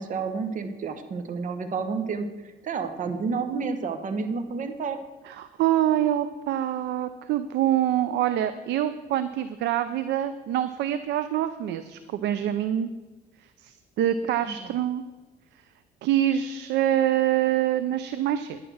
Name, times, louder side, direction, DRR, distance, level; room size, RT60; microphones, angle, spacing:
voice 1, 0.0-2.3 2.6-5.0 14.4-14.7, right 5 dB, 45° right, 7 dB, 1.2 m, -30 dB
voice 2, 5.3-12.9 13.6-15.0 16.0-18.6, right 11 dB, 75° right, 11 dB, 0.6 m, -25 dB
10.5 x 9.2 x 6.3 m, 1.2 s
cardioid pair, 110°, 18 cm